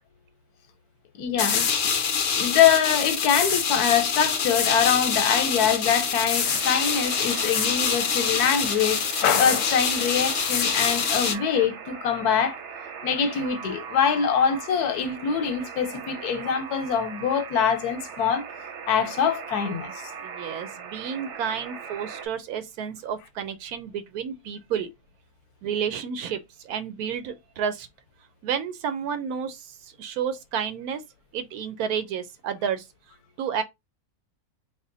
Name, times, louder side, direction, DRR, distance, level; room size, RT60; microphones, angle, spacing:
voice 1, 1.2-1.7 2.3-12.6 13.0-18.4 18.9-19.9, left 7 dB, 90° left, 1.2 m, -24 dB
sound 1, 1.4-11.3, left 6 dB, 55° left, 0.8 m, -25 dB
Alarm, 6.4-22.3, right 6 dB, 60° right, 0.9 m, -39 dB
voice 2, 20.2-24.9 25.6-27.9 28.4-31.0 31.3-32.9 33.4-33.6, right 7 dB, 85° right, 1.1 m, -31 dB
3.4 x 2.1 x 3.8 m
omnidirectional pair, 1.6 m